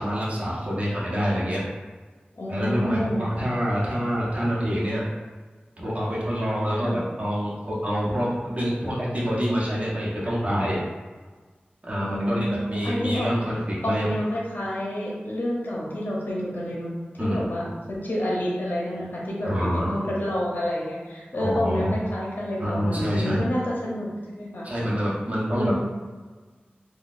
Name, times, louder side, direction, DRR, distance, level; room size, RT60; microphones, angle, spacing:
voice 1, 0.0-1.6 2.5-5.0 5.8-10.8 11.8-14.1 17.2-17.7 19.4-19.9 21.3-21.9 22.6-23.4 24.6-25.9, equal, 40° right, -7 dB, 1.0 m, -26 dB
voice 2, 2.3-3.3 6.8-7.0 12.0-13.3 13.8-16.9 17.2-24.9 25.5-25.9, equal, 60° left, -4 dB, 0.8 m, -29 dB
3.8 x 2.4 x 2.5 m, 1.4 s
wide cardioid pair, 50°, 4 cm